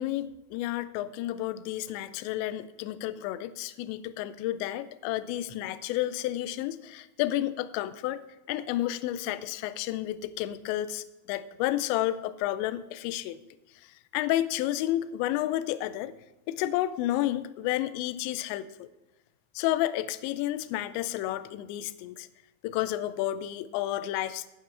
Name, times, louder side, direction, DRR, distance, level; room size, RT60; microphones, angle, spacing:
voice 1, 0.0-8.2 8.5-13.4 13.8-16.1 16.5-18.9 19.6-22.3 22.6-24.5, left 14 dB, 85° left, 13 dB, 2.7 m, -31 dB
12.5 x 9.5 x 3.3 m, 1.0 s
omnidirectional pair, 5.4 m